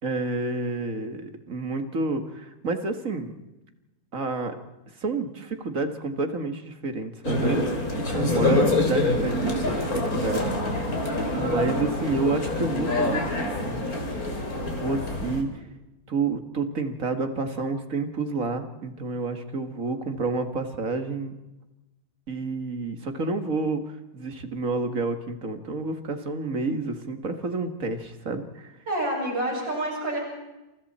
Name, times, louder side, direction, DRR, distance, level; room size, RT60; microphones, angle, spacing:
voice 1, 0.0-3.3 4.1-4.5 5.0-7.7 8.1-10.9 11.4-13.3 13.6-14.0 14.8-15.5 16.1-21.3 22.3-23.8 24.1-28.7, right 3 dB, 45° right, 7 dB, 2.2 m, -29 dB
sound 1, 7.2-15.4, left 2 dB, 50° left, 4.0 m, -26 dB
voice 2, 8.3-8.8 28.9-30.2, right 1 dB, 70° right, -1 dB, 7.9 m, -29 dB
28.5 x 28.0 x 4.4 m, 1.0 s
omnidirectional pair, 2.1 m